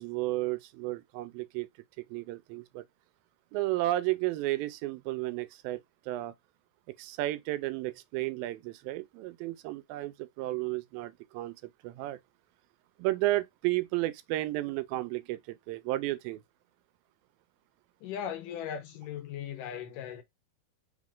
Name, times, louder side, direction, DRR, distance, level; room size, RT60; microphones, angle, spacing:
voice 1, 0.0-1.7 2.1-2.8 3.5-5.8 6.1-6.3 7.0-11.6 11.8-12.2 13.0-16.4, right 17 dB, 85° right, 2.4 m, -32 dB
voice 2, 18.0-20.2, left 9 dB, 75° left, 2.3 m, -38 dB
5.5 x 2.4 x 3.6 m
omnidirectional pair, 4.1 m